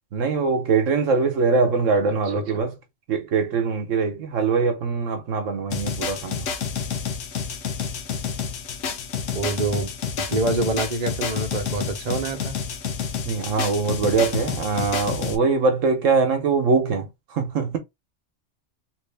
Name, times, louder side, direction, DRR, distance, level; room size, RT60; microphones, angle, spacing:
voice 1, 0.1-2.8 3.1-6.5 13.2-17.8, right 4 dB, 80° right, 1.2 m, -22 dB
sound 1, 5.7-15.4, left 6 dB, 80° left, 1.0 m, -29 dB
voice 2, 9.3-9.9 10.2-12.6, right 3 dB, 40° right, 0.8 m, -26 dB
3.3 x 2.6 x 3.3 m
omnidirectional pair, 1.3 m